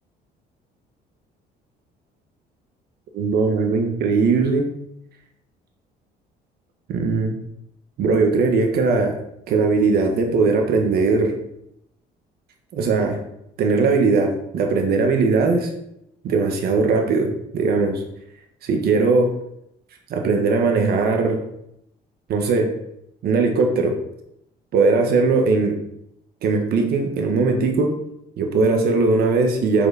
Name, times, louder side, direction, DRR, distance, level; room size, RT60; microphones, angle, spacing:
voice 1, 3.1-4.7 6.9-7.4 8.0-9.1 9.5-11.3 12.7-13.2 13.6-15.7 16.2-18.0 18.6-19.3 20.1-21.4 22.3-22.7 23.2-23.9 24.7-25.8 26.4-28.0 28.4-29.9, right 4 dB, 65° right, 3 dB, 1.6 m, -19 dB
6.8 x 6.4 x 4.2 m, 0.79 s
cardioid pair, 110°, 17 cm